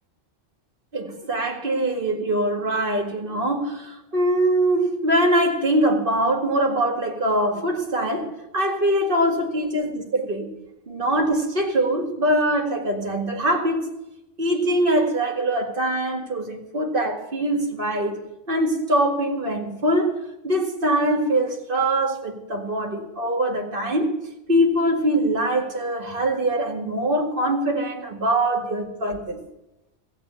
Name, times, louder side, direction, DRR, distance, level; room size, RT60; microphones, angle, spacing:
voice 1, 0.9-10.5 10.9-13.9 14.4-18.2 18.5-20.1 20.4-24.1 24.5-29.4, right 1 dB, 45° right, 2.3 m, -23 dB
15.0 x 8.1 x 9.4 m
omnidirectional pair, 1.2 m